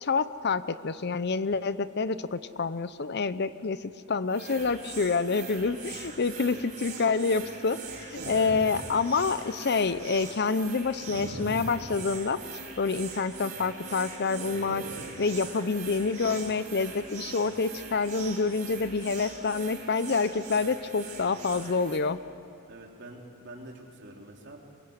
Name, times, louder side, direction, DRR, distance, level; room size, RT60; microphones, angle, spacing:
voice 1, 0.0-12.4 12.8-14.8 15.2-22.2, left 4 dB, 50° left, 14 dB, 0.6 m, -28 dB
sound 1, 4.3-22.0, right 5 dB, 35° right, 4.1 m, -42 dB
voice 2, 8.2-8.5 22.7-24.6, right 1 dB, 55° right, 0 dB, 3.5 m, -45 dB
sound 2, 8.2-9.5 11.0-12.5 14.2-15.8, right 1 dB, 75° right, 4.0 m, -42 dB
26.0 x 22.5 x 8.0 m, 2.4 s
head